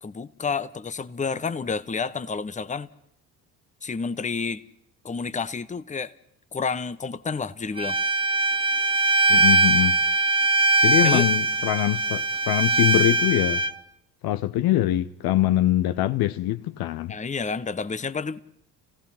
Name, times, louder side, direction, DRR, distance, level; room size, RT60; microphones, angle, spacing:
voice 1, 0.0-2.9 3.8-4.6 5.0-6.1 6.5-8.0 11.0-11.3 17.1-18.4, left 5 dB, 15° left, 1.0 m, -30 dB
Bowed string instrument, 7.8-13.7, right 2 dB, 10° right, 1.2 m, -21 dB
voice 2, 9.3-10.0 10.8-13.6 14.2-17.2, left 14 dB, 55° left, 0.8 m, -23 dB
29.0 x 17.0 x 5.8 m
hypercardioid pair, 55°, 46 cm